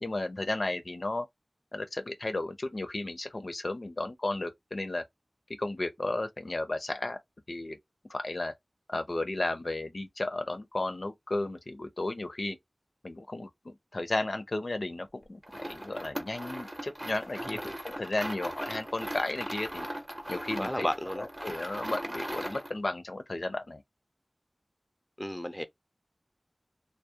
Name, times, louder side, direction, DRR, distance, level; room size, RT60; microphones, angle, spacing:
voice 1, 0.0-1.3 1.7-5.0 5.6-7.2 7.5-7.8 8.1-8.5 8.9-12.6 13.0-19.9 20.3-20.9 21.2-23.8, left 2 dB, 70° left, 0.4 m, -34 dB
sound 1, 15.4-22.8, right 1 dB, 25° right, 0.6 m, -39 dB
voice 2, 20.6-21.3 25.2-25.6, equal, 10° left, 0.4 m, -33 dB
2.3 x 2.0 x 2.7 m
wide cardioid pair, 45°, 0 cm